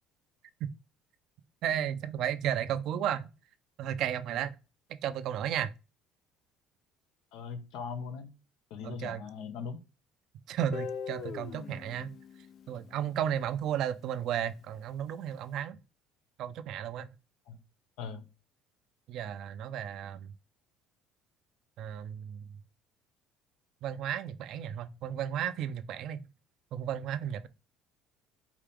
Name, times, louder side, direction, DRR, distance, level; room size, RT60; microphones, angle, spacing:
voice 1, 1.6-3.3 3.8-4.5 5.0-5.7 8.8-9.2 10.5-12.1 12.7-15.8 16.4-17.1 19.1-20.3 21.8-22.4 23.8-26.2 26.7-27.5, right 10 dB, 60° right, 0.5 m, -33 dB
voice 2, 7.3-8.3 8.7-9.8 17.5-17.6 18.0-18.3, left 5 dB, 75° left, 1.0 m, -40 dB
Guitar, 10.7-13.7, left 6 dB, 50° left, 0.5 m, -42 dB
4.8 x 2.9 x 3.5 m
cardioid pair, 105°, 0 cm